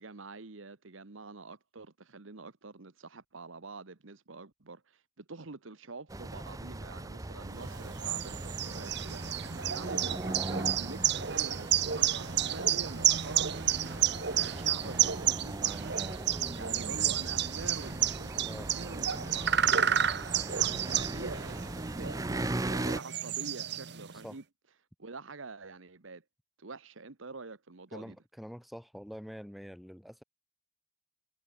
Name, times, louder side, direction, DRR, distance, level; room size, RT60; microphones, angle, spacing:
voice 1, 0.0-13.6 14.4-16.1 16.6-19.9 20.3-24.4 25.0-26.2 26.6-28.2, right 3 dB, 75° right, 1.2 m, -46 dB
sound 1, 6.1-23.0, right 2 dB, 15° right, 0.5 m, -39 dB
sound 2, 7.6-24.2, right 10 dB, 55° right, 1.3 m, -31 dB
voice 2, 27.9-30.2, equal, ahead, 6.3 m, -45 dB
head